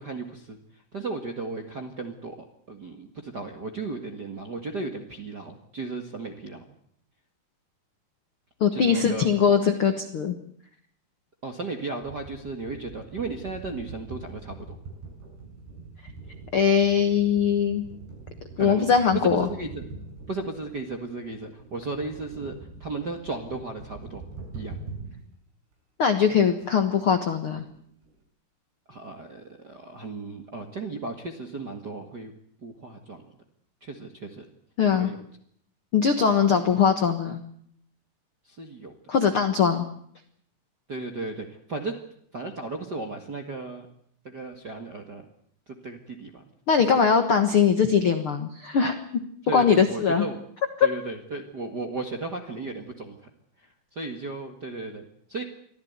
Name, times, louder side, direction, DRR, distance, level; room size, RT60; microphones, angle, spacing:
voice 1, 0.0-2.4 2.7-6.6 8.7-9.3 11.4-14.7 18.6-18.9 19.2-19.8 20.3-22.5 22.8-24.2 24.5-24.8 28.9-32.3 32.6-33.2 33.8-34.4 34.9-35.2 38.4-38.9 39.3-39.5 40.9-42.0 42.3-43.9 44.2-45.2 45.7-46.4 46.9-47.0 49.5-50.4 50.8-53.3 53.6-55.4, right 3 dB, 45° right, 4 dB, 1.4 m, -35 dB
voice 2, 8.6-10.3 16.5-17.8 18.6-19.5 26.0-27.6 34.8-35.1 35.9-37.4 39.1-39.8 46.7-49.0 49.5-50.2 50.8-50.9, left 6 dB, 65° left, 8 dB, 1.3 m, -21 dB
sound 1, 12.0-25.3 25.7-25.8 26.1-26.2 26.6-26.7 26.9-28.2, right 3 dB, 75° right, 8.2 m, -43 dB
24.5 x 15.5 x 9.6 m, 0.67 s
omnidirectional pair, 4.8 m